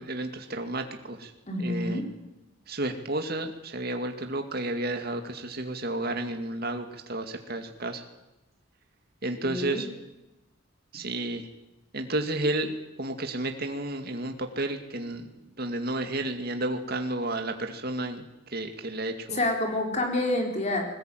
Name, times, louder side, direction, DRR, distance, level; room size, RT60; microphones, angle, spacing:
voice 1, 0.0-1.3 1.6-2.0 2.7-8.0 9.2-9.9 10.9-11.5 11.9-15.3 15.6-18.2 18.5-19.4, right 2 dB, 50° right, 5 dB, 2.2 m, -32 dB
voice 2, 1.5-2.1 9.4-9.9 19.3-20.9, left 1 dB, 35° left, 2 dB, 4.0 m, -28 dB
21.0 x 19.5 x 9.2 m, 0.97 s
head